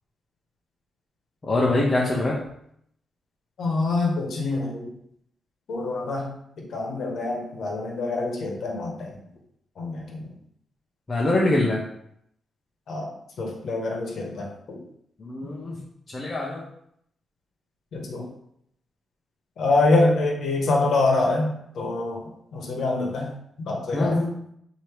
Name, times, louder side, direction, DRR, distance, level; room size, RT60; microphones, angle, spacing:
voice 1, 1.4-2.4 11.1-11.8 15.2-15.8 16.1-16.6 23.9-24.3, left 2 dB, 30° left, -3 dB, 0.7 m, -23 dB
voice 2, 3.6-4.9 5.7-9.1 9.8-10.3 12.9-14.8 15.4-15.5 17.9-18.3 19.6-22.2 22.5-23.3 23.7-24.2, left 2 dB, 65° left, 0 dB, 1.1 m, -25 dB
3.3 x 2.8 x 4.6 m, 0.72 s
cardioid pair, 115°, 0 cm